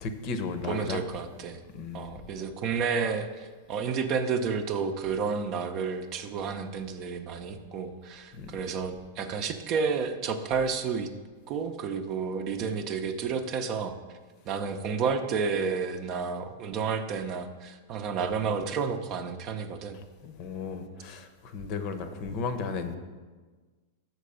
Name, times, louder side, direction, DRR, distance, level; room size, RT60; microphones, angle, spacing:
voice 1, 0.0-1.0 1.7-2.2 8.3-8.5 20.2-23.0, left 4 dB, 45° left, 9 dB, 0.8 m, -34 dB
voice 2, 0.6-1.6 1.9-11.1 11.5-14.0 14.5-20.0, right 5 dB, 40° right, 7 dB, 0.6 m, -31 dB
6.6 x 4.5 x 6.6 m, 1.4 s
figure-of-eight pair, 95°, 0 cm